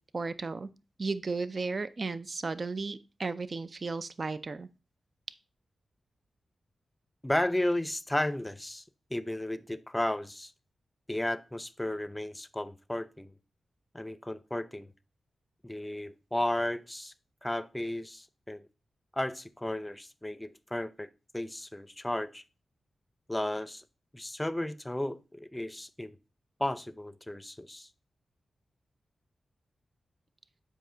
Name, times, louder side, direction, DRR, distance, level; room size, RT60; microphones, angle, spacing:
voice 1, 0.1-0.7 1.0-4.7, right 3 dB, 50° right, 14 dB, 0.5 m, -34 dB
voice 2, 7.2-8.8 9.1-10.5 11.1-13.3 13.9-14.9 15.6-17.1 17.4-18.7 19.1-22.4 23.3-23.8 24.1-26.2 26.6-27.9, left 1 dB, 15° left, 16 dB, 0.6 m, -34 dB
7.8 x 5.0 x 3.8 m, 0.31 s
cardioid pair, 45°, 0 cm